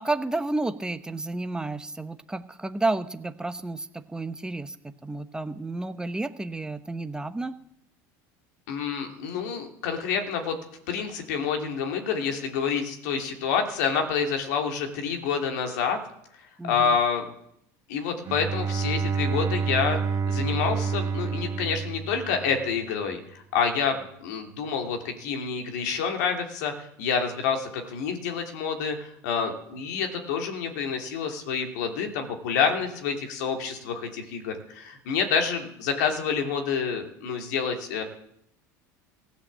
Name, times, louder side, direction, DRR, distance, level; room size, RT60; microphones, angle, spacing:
voice 1, 0.0-7.5 16.6-17.0, right 2 dB, 10° right, 10 dB, 1.0 m, -31 dB
voice 2, 8.7-10.6 10.9-16.0 16.6-17.3 17.9-20.0 20.3-38.0, left 6 dB, 80° left, 3 dB, 2.7 m, -28 dB
Bowed string instrument, 18.2-22.9, right 5 dB, 35° right, 1.3 m, -28 dB
16.0 x 8.0 x 7.5 m, 0.75 s
supercardioid pair, 95°, 9 cm